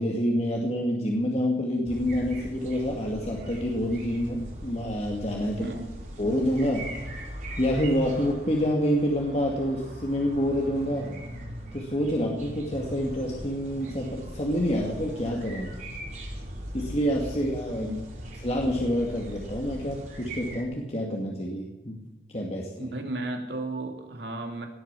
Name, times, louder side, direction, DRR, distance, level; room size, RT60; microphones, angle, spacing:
voice 1, 0.0-5.7 6.2-6.9 7.6-11.1 11.7-15.7 16.7-17.9 18.4-22.0 22.3-22.9, equal, 35° left, -1 dB, 2.3 m, -27 dB
sound 1, 1.9-20.6, equal, 45° right, 5.5 m, -40 dB
voice 2, 5.6-5.9 17.7-18.1 22.8-24.7, right 2 dB, 70° right, 4 dB, 3.1 m, -34 dB
18.0 x 9.1 x 8.4 m, 1.1 s
head